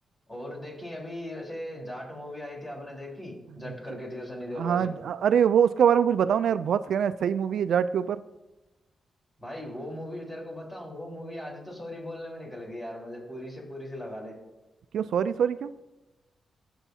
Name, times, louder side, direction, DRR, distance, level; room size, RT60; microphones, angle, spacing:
voice 1, 0.3-4.9 9.4-14.4, left 1 dB, 20° left, -2 dB, 4.1 m, -38 dB
voice 2, 4.6-8.2 14.9-15.7, right 8 dB, 80° right, 13 dB, 0.3 m, -24 dB
19.0 x 7.0 x 2.8 m, 1.1 s
cardioid pair, 100°, 0 cm